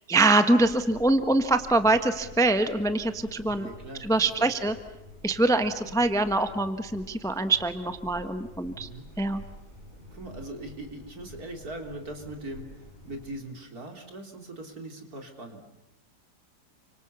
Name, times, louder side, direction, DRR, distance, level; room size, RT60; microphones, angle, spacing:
voice 1, 0.1-3.7 4.0-4.7 5.2-8.9 9.2-9.4, right 2 dB, ahead, 9 dB, 1.1 m, -24 dB
sound 1, 0.6-13.3, left 1 dB, 25° right, 8.2 m, -49 dB
voice 2, 3.4-4.7 8.7-9.1 10.1-15.6, right 1 dB, 55° right, 4 dB, 4.0 m, -41 dB
29.5 x 25.5 x 7.0 m, 1.0 s
omnidirectional pair, 1.9 m